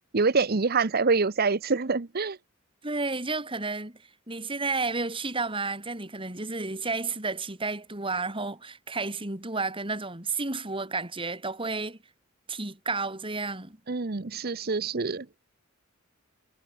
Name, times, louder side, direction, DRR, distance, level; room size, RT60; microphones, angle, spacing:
voice 1, 0.1-2.4 13.9-15.3, right 4 dB, 50° right, 0.9 m, -25 dB
voice 2, 2.8-4.0 4.3-12.0 12.5-13.8, right 3 dB, 25° right, 4.0 m, -31 dB
head